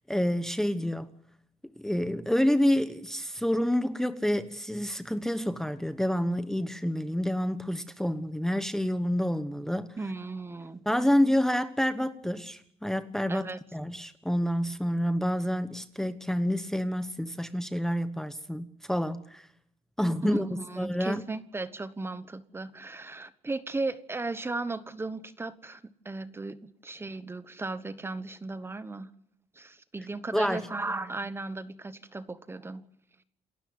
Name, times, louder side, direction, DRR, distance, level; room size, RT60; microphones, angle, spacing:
voice 1, 0.1-1.1 1.8-9.9 10.9-19.5 20.0-20.5 20.8-21.2 30.3-30.7, equal, 5° left, 1.0 m, -28 dB
voice 2, 10.0-10.8 13.3-13.6 20.2-29.1 29.5-32.8, right 3 dB, 15° right, 1.2 m, -36 dB
28.5 x 13.0 x 9.6 m
cardioid pair, 120°, 14 cm